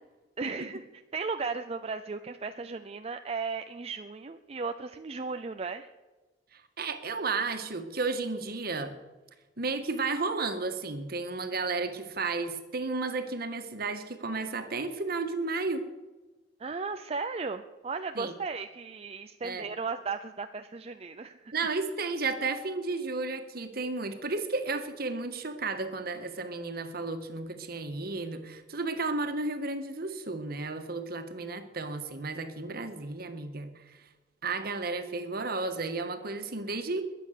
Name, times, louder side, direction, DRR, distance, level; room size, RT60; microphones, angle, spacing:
voice 1, 0.4-0.8 1.1-5.9 16.6-21.5, right 4 dB, 35° right, 7 dB, 0.6 m, -35 dB
voice 2, 6.5-9.0 9.6-15.8 18.2-18.3 19.4-19.7 21.5-34.0 34.4-37.0, right 3 dB, 55° right, 7 dB, 1.8 m, -33 dB
22.0 x 8.7 x 6.7 m, 1.2 s
head